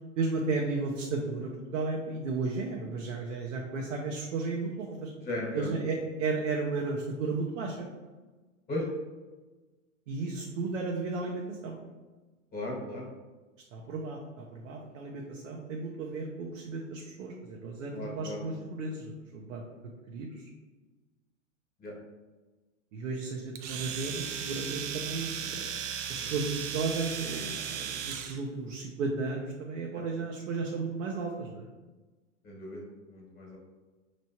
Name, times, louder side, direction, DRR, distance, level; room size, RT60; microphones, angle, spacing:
voice 1, 0.2-5.1 5.5-7.9 10.1-11.8 13.7-19.6 20.1-20.5 22.9-25.7 26.1-31.7, right 3 dB, 80° right, 0 dB, 0.8 m, -34 dB
voice 2, 5.2-5.7 8.7-8.8 12.5-13.1 17.9-18.4 21.8-21.9 26.2-26.3 29.9-30.0 32.4-33.6, left 1 dB, 25° left, -2 dB, 1.3 m, -37 dB
Domestic sounds home sounds, 23.6-28.4, right 8 dB, 35° right, 0.5 m, -36 dB
5.2 x 3.1 x 2.8 m, 1.3 s
hypercardioid pair, 115°, 37 cm